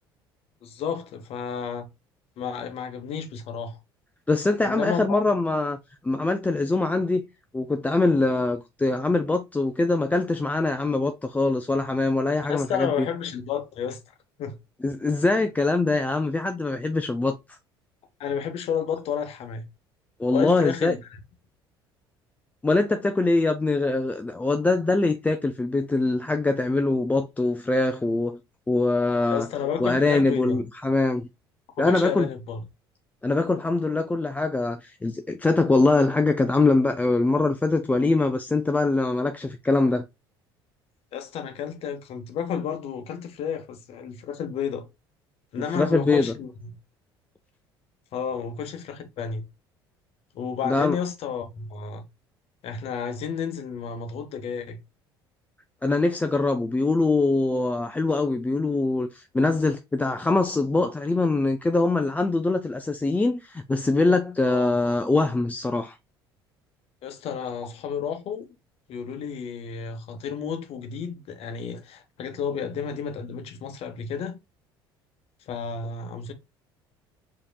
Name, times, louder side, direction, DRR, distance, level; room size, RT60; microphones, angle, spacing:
voice 1, 0.6-1.9 2.4-3.8 4.6-5.2 12.5-14.0 14.4-14.6 18.2-19.6 20.3-21.2 29.3-30.6 31.8-32.6 41.1-44.8 45.5-46.7 48.1-49.5 50.3-52.1 52.6-54.8 64.4-64.8 67.0-68.5 68.9-74.4 75.5-76.3, left 7 dB, 55° left, 0.9 m, -31 dB
voice 2, 4.3-5.8 6.0-7.3 7.5-13.1 14.8-17.6 20.2-20.9 22.6-28.4 28.7-29.5 29.8-31.3 31.8-32.3 33.2-40.0 45.7-46.3 50.6-51.0 55.8-66.0, left 3 dB, 10° left, 0.4 m, -23 dB
4.9 x 2.9 x 2.2 m
hypercardioid pair, 60°, 12 cm